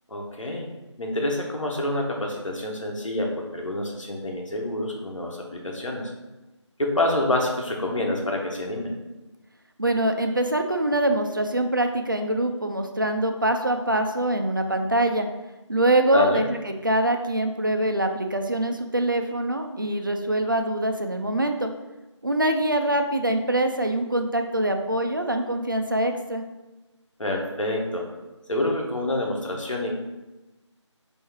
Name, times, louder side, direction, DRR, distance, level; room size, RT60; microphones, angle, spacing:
voice 1, 0.1-0.7 1.0-6.1 6.8-8.9 16.1-16.4 27.2-28.1 28.5-29.9, left 1 dB, 90° left, 0 dB, 1.2 m, -27 dB
voice 2, 9.8-15.3 15.7-16.6 16.8-21.7 22.2-26.4, right 1 dB, 45° right, 5 dB, 0.4 m, -24 dB
3.6 x 3.1 x 4.5 m, 1.1 s
figure-of-eight pair, 175°, 16 cm